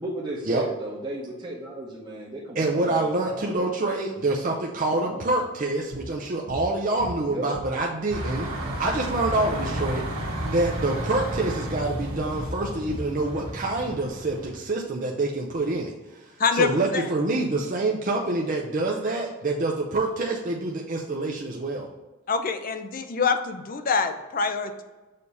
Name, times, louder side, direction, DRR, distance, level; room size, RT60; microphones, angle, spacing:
voice 1, 0.0-3.7 5.0-5.3 7.2-7.5, right 1 dB, 20° right, -7 dB, 0.9 m, -35 dB
voice 2, 2.6-8.5 8.8-10.0 10.4-15.9 16.5-21.9, right 2 dB, 35° right, -1 dB, 0.5 m, -26 dB
sound 1, 5.9-6.1 6.5-6.7 7.0-7.8 8.1-9.9 10.2-10.5 10.8-11.0 11.4-11.6 11.9-13.6, equal, 55° right, 1.0 m, -38 dB
sound 2, 8.1-14.6, right 1 dB, 80° right, 1.6 m, -32 dB
voice 3, 16.4-17.1 22.3-24.8, left 5 dB, 40° left, 8 dB, 0.4 m, -25 dB
6.5 x 2.8 x 5.3 m, 1.2 s
head